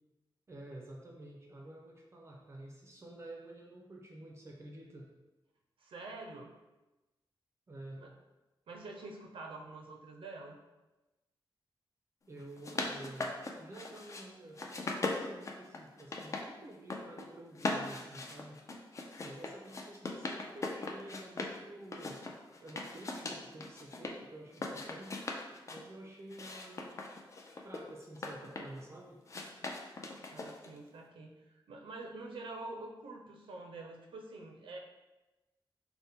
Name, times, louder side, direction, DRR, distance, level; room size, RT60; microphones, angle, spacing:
voice 1, 0.5-5.1 7.7-8.0 12.3-18.6 19.2-22.2 22.6-25.2 25.7-27.0 27.6-29.2, right 1 dB, 30° right, -1 dB, 0.4 m, -50 dB
voice 2, 5.8-6.5 8.0-8.1 8.7-10.6 30.3-34.8, right 2 dB, 90° right, 1 dB, 0.4 m, -46 dB
sound 1, 12.4-14.2 14.6-16.5 16.7-17.3 17.6-21.6 21.9-24.1 24.5-25.8 26.3-28.8 29.3-30.8, left 2 dB, 35° left, 0.4 m, -39 dB
4.1 x 2.1 x 3.4 m, 1.1 s
wide cardioid pair, 165°, 9 cm